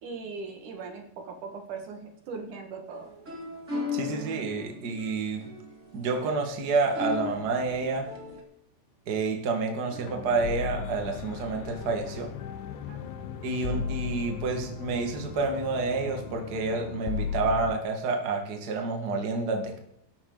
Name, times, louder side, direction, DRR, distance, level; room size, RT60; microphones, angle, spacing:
voice 1, 0.0-3.1 12.9-13.2, right 4 dB, 55° right, 3 dB, 2.6 m, -40 dB
sound 1, 2.9-8.4, left 3 dB, 30° right, 1.4 m, -37 dB
voice 2, 3.9-5.4 5.9-8.1 9.1-12.3 13.4-19.8, right 4 dB, 90° right, 3 dB, 0.8 m, -29 dB
sound 2, 9.9-17.6, left 5 dB, 65° left, 2.1 m, -45 dB
sound 3, 10.4-17.8, left 9 dB, 85° left, 3.0 m, -36 dB
17.5 x 12.5 x 4.0 m, 0.72 s
omnidirectional pair, 5.1 m